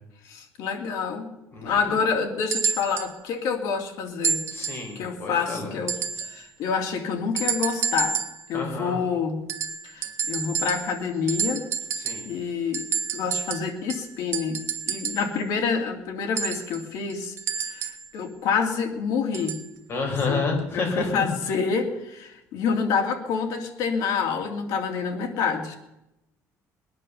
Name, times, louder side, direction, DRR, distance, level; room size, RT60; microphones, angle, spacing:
voice 1, 0.2-1.3 1.6-4.4 4.9-6.0 6.2-8.2 8.5-9.4 9.8-11.6 12.2-12.9 13.1-17.3 17.6-19.6 20.3-20.4 20.7-25.8, left 5 dB, 75° left, 3 dB, 2.6 m, -27 dB
sound 1, 2.5-3.1 4.2-4.9 5.9-6.4 7.4-8.5 9.5-11.0 11.3-12.4 12.7-15.3 16.4-18.1 19.3-19.7 20.6-20.7, right 6 dB, 45° right, 1.0 m, -29 dB
voice 2, 4.5-5.7 8.5-9.0 11.9-12.3 19.9-21.3, left 4 dB, 40° left, 1 dB, 4.4 m, -29 dB
20.5 x 9.8 x 6.9 m, 0.89 s
cardioid pair, 170°, 6 cm